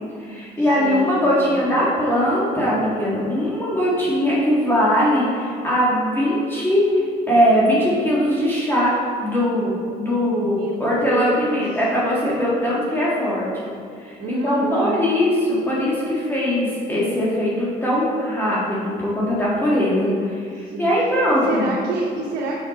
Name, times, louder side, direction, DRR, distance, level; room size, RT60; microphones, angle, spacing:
voice 1, 0.2-13.7 14.0-21.7, equal, 15° left, -7 dB, 1.5 m, -21 dB
voice 2, 0.8-1.7 10.4-10.8 11.0-11.6 14.2-14.9 19.8-20.3 20.6-20.9 21.3-22.6, right 2 dB, 85° right, -3 dB, 0.9 m, -28 dB
5.9 x 5.4 x 3.9 m, 2.3 s
cardioid pair, 110°, 17 cm